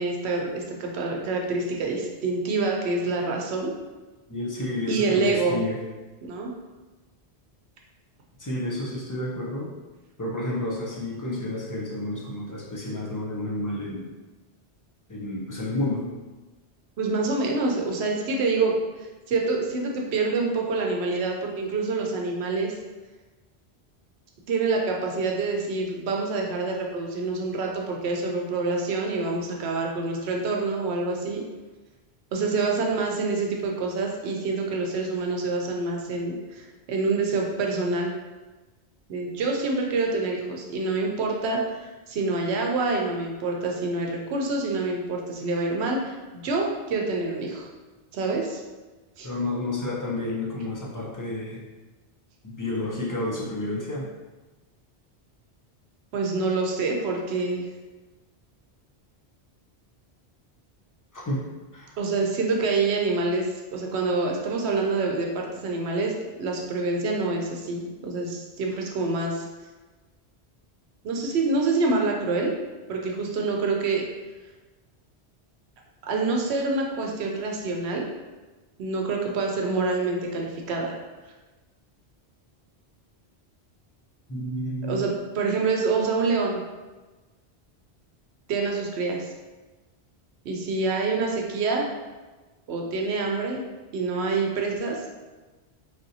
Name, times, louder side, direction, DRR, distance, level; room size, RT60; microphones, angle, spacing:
voice 1, 0.0-3.7 4.9-5.6 6.2-6.5 17.0-22.7 24.5-31.4 32.3-38.1 39.1-47.7 48.1-48.6 49.2-49.3 56.1-57.7 62.0-66.1 66.4-69.5 71.0-72.5 72.9-74.0 76.1-78.0 78.8-81.0 84.9-86.6 88.5-89.3 90.4-91.9 92.7-93.6 93.9-95.0, right 3 dB, 80° right, 0 dB, 0.9 m, -26 dB
voice 2, 4.3-5.8 8.4-9.7 10.2-14.1 15.1-16.1 49.2-51.6 52.4-54.0 61.1-61.4 61.7-61.9 84.3-85.0, left 1 dB, 30° left, -5 dB, 0.3 m, -30 dB
3.3 x 2.6 x 2.7 m, 1.2 s
omnidirectional pair, 1.1 m